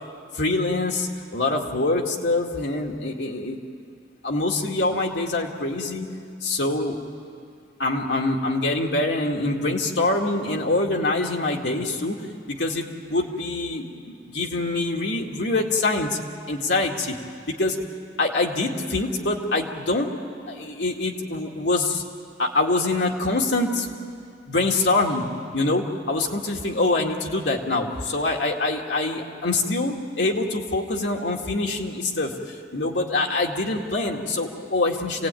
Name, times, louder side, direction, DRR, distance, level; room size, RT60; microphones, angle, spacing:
voice 1, 0.3-3.6 4.2-6.1 6.4-7.0 7.8-12.2 12.5-16.2 16.5-17.2 17.5-17.8 18.2-20.1 20.4-22.0 22.4-23.9 24.5-25.3 25.5-35.3, left 2 dB, 75° left, 0 dB, 2.1 m, -25 dB
27.0 x 17.5 x 9.2 m, 2.3 s
head